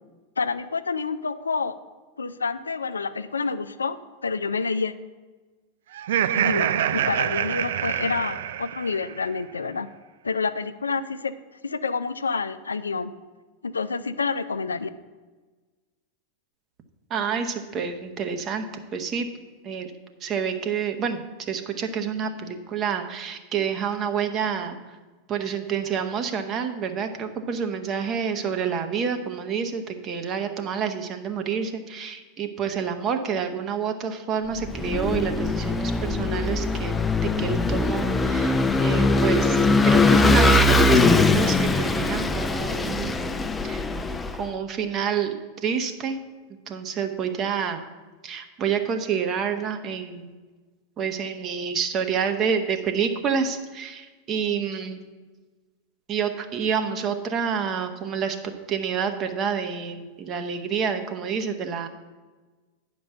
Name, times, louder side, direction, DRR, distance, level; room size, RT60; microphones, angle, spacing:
voice 1, 0.4-1.8 2.2-4.9 6.3-9.9 10.2-11.3 11.6-13.1 13.6-14.9, left 4 dB, 85° left, 11 dB, 0.4 m, -28 dB
Laughter, 5.9-9.2, right 10 dB, 65° right, 0.3 m, -26 dB
voice 2, 17.1-19.3 19.6-19.9 20.2-24.8 25.3-43.2 43.6-43.8 44.4-45.3 45.6-46.2 46.7-47.8 48.2-50.3 51.0-55.0 56.1-61.9, right 7 dB, 35° right, 7 dB, 1.0 m, -28 dB
Vehicle / Engine, 34.6-44.4, left 2 dB, 15° left, 0.5 m, -21 dB
8.9 x 5.2 x 6.6 m, 1.3 s
figure-of-eight pair, 90°, 0 cm